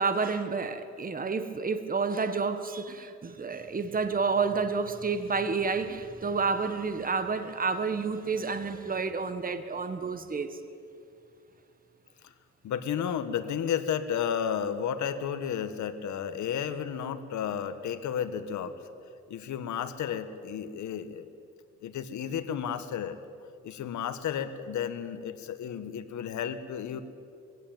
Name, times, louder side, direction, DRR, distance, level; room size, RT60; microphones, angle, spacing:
voice 1, 0.0-10.6, right 4 dB, 30° right, 1.6 m, -30 dB
voice 2, 12.6-18.7 19.3-21.3 21.8-23.2 23.6-27.0, left 8 dB, 70° left, 1.5 m, -32 dB
22.0 x 16.5 x 9.2 m
cardioid pair, 90°, 30 cm